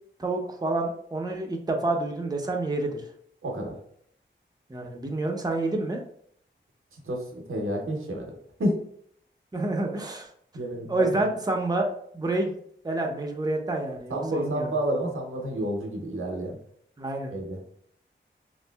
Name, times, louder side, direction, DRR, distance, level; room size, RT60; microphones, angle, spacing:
voice 1, 0.2-3.0 4.7-6.0 9.5-10.3 10.9-11.9 12.1-12.5 12.8-14.7 17.0-17.3, right 2 dB, 20° right, 1 dB, 0.5 m, -28 dB
voice 2, 3.4-3.8 7.0-8.3 8.6-8.8 10.5-11.1 14.1-16.6 17.3-17.6, right 1 dB, 90° right, 0 dB, 0.6 m, -29 dB
3.0 x 2.6 x 2.2 m, 0.65 s
cardioid pair, 45°, 21 cm